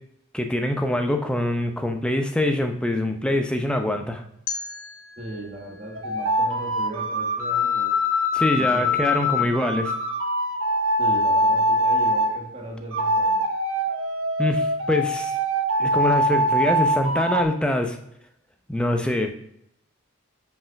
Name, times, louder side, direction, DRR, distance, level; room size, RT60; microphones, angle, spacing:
voice 1, 0.3-4.2 8.3-9.9 14.4-15.3 15.8-18.0 18.7-19.4, left 1 dB, 5° left, 5 dB, 0.6 m, -24 dB
sound 1, 4.5-7.4, left 5 dB, 70° left, 0.9 m, -38 dB
voice 2, 5.2-7.9 8.5-9.5 11.0-13.4, right 2 dB, 30° right, -2 dB, 1.5 m, -37 dB
sound 2, 5.9-12.3 12.9-17.4, equal, 65° right, 1.1 m, -23 dB
5.7 x 5.4 x 5.8 m, 0.77 s
head